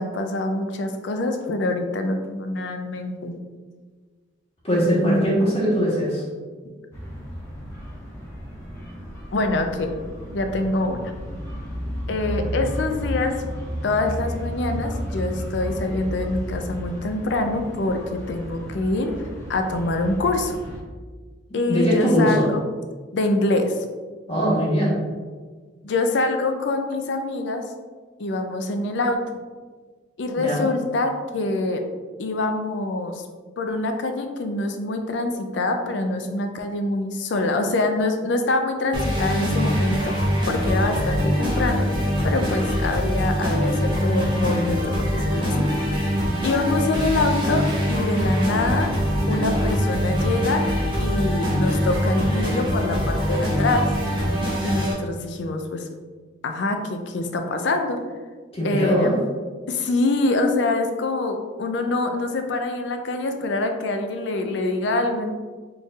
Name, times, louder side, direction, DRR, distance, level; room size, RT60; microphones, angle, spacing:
voice 1, 0.0-3.3 5.0-6.0 9.3-9.9 10.3-11.0 12.1-13.4 13.8-19.1 19.5-20.6 21.5-22.7 23.1-23.8 25.8-27.6 28.2-29.2 30.2-31.8 32.2-33.2 33.6-41.9 42.2-45.5 46.4-48.9 49.3-50.6 51.0-53.9 54.6-55.9 56.4-58.0 58.6-59.2 59.7-65.3, left 2 dB, 70° left, 6 dB, 0.4 m, -25 dB
voice 2, 4.6-6.2 21.7-22.5 24.3-25.0 30.4-30.6 58.5-59.1, equal, 35° left, -6 dB, 1.3 m, -21 dB
sound 1, 6.9-20.8, equal, 15° left, 1.0 m, -33 dB
sound 2, 38.9-54.9, equal, 25° right, 0.9 m, -23 dB
4.3 x 3.2 x 2.4 m, 1.5 s
head